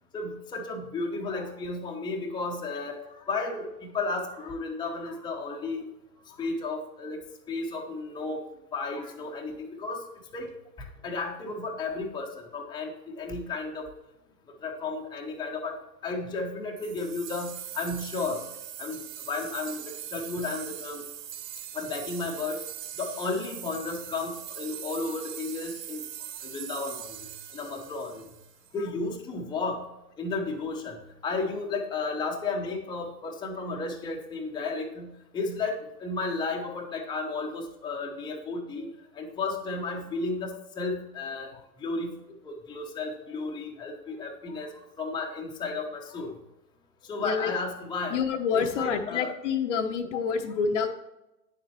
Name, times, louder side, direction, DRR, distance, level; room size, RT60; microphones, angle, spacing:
voice 1, 0.1-5.9 6.3-7.2 7.5-8.4 8.7-10.0 10.3-13.9 14.6-18.4 18.8-19.0 19.3-21.0 21.7-22.6 23.0-26.0 26.4-28.3 28.7-29.8 30.2-38.9 39.1-41.5 41.8-46.4 47.0-48.2 48.5-49.3, left 3 dB, 10° left, 1 dB, 0.9 m, -33 dB
sound 1, 16.8-28.8, right 10 dB, 75° right, 0.8 m, -41 dB
voice 2, 47.2-47.5 48.1-50.9, left 6 dB, 45° left, 6 dB, 0.9 m, -27 dB
9.4 x 7.4 x 3.0 m, 0.93 s
figure-of-eight pair, 115°, 49 cm